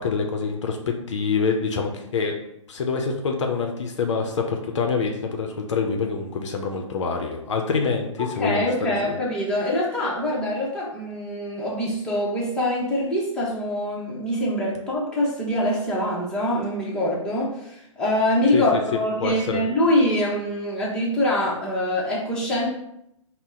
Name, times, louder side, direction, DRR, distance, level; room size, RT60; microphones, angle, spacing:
voice 1, 0.0-2.3 2.7-9.2 18.5-18.8 19.2-19.6, left 5 dB, 60° left, 3 dB, 0.6 m, -26 dB
voice 2, 8.2-22.7, left 1 dB, 5° left, -7 dB, 0.8 m, -24 dB
4.0 x 2.1 x 3.6 m, 0.79 s
hypercardioid pair, 135°, 17 cm